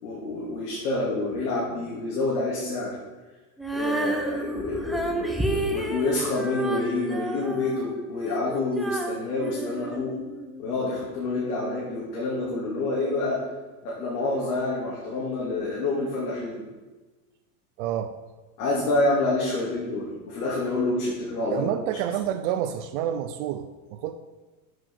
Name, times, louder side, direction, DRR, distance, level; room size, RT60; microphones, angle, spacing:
voice 1, 0.0-3.0 3.7-10.1 10.6-13.4 13.8-16.6 18.6-21.7, left 2 dB, 80° left, -5 dB, 2.8 m, -28 dB
Female singing, 3.6-10.6, right 1 dB, ahead, 0.7 m, -31 dB
voice 2, 17.8-18.1 21.5-24.2, right 10 dB, 55° right, 9 dB, 0.6 m, -29 dB
7.7 x 5.6 x 7.0 m, 1.2 s
supercardioid pair, 130°, 45 cm